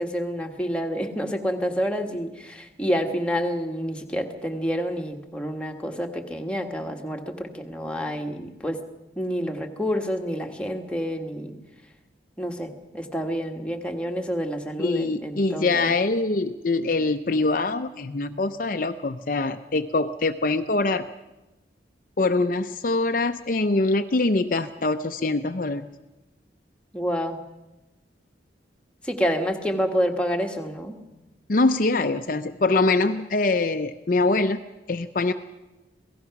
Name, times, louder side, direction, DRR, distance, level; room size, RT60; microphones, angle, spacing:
voice 1, 0.0-8.8 9.2-11.6 12.4-15.9 26.9-27.4 29.0-31.0, equal, 5° left, 3 dB, 1.5 m, -28 dB
voice 2, 14.8-21.0 22.2-25.9 31.5-34.6 34.9-35.3, left 3 dB, 45° left, 8 dB, 0.6 m, -23 dB
27.0 x 17.5 x 5.9 m, 1.0 s
head